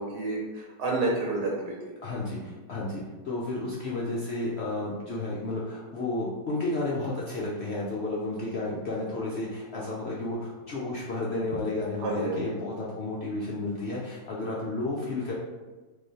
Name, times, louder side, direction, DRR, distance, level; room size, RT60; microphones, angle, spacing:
voice 1, 0.0-1.7 12.0-12.5, right 2 dB, 80° right, -2 dB, 1.4 m, -29 dB
voice 2, 2.0-15.3, left 2 dB, 65° left, -5 dB, 0.6 m, -32 dB
3.7 x 3.0 x 4.0 m, 1.2 s
omnidirectional pair, 1.8 m